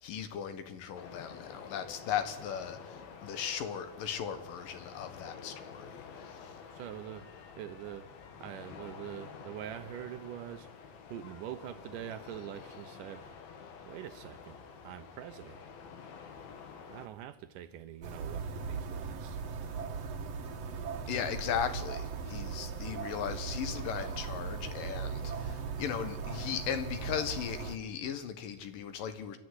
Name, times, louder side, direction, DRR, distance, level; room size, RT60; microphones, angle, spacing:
voice 1, 0.0-6.5 21.1-29.4, left 8 dB, 70° left, 2.9 m, -37 dB
sound 1, 1.0-17.1, left 6 dB, 90° left, 3.8 m, -49 dB
voice 2, 6.7-7.3 7.6-8.1 8.4-10.7 11.1-13.3 13.9-15.6 16.9-19.4, right 11 dB, 75° right, 2.3 m, -44 dB
sound 2, 18.0-27.8, right 5 dB, 55° right, 2.2 m, -38 dB
28.0 x 12.0 x 9.8 m
omnidirectional pair, 4.1 m